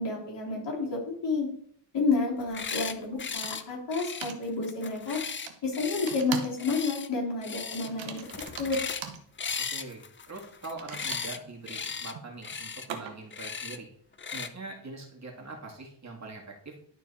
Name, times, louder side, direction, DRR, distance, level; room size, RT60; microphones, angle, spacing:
voice 1, 0.0-1.5 1.9-5.2 5.6-8.2 8.6-8.8, left 3 dB, 70° left, -3 dB, 3.3 m, -30 dB
sound 1, 2.4-2.9 3.2-3.6 3.9-6.2 6.6-7.1 7.4-7.9 8.2-9.1 9.4-11.4 11.7-12.1 12.4-12.9 13.3-13.8 14.2-14.5, left 6 dB, 25° left, 0.5 m, -37 dB
sound 2, 2.6-2.7 3.4-3.8 4.2-4.4 5.5-5.6 6.1-6.6 6.9-7.2 7.8-9.2 10.6-13.4, right 7 dB, 85° right, 1.2 m, -40 dB
voice 2, 9.7-13.9 14.3-16.7, right 3 dB, 40° right, 0 dB, 2.2 m, -43 dB
11.5 x 4.4 x 4.2 m, 0.63 s
cardioid pair, 100°, 44 cm